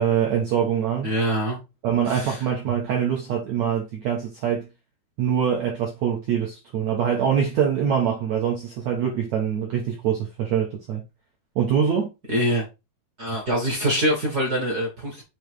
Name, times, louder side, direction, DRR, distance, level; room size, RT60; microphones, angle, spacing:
voice 1, 0.0-1.1 1.8-4.7 5.2-11.0 11.5-12.1, right 8 dB, 75° right, 1.6 m, -24 dB
voice 2, 1.0-1.6 2.1-2.4 12.3-12.6 13.2-15.2, equal, 50° right, 1.1 m, -24 dB
7.1 x 3.1 x 4.8 m
omnidirectional pair, 4.7 m